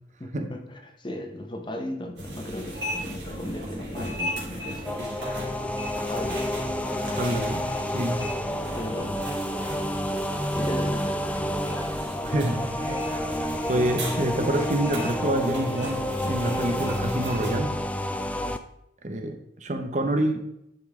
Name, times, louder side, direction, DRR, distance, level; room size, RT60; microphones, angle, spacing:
voice 1, 0.2-5.2 6.1-6.5 7.0-7.2 8.8-9.2 10.5-11.6, left 1 dB, 25° left, 4 dB, 1.0 m, -36 dB
sound 1, 2.2-17.6, equal, 75° right, 2.9 m, -36 dB
sound 2, 4.8-18.6, left 1 dB, 10° left, 0.4 m, -30 dB
voice 2, 7.1-7.6 7.9-8.2 12.2-13.2 13.7-17.7 19.0-19.4 19.6-20.4, right 1 dB, 40° right, 6 dB, 0.9 m, -27 dB
10.5 x 5.4 x 3.7 m, 0.79 s
head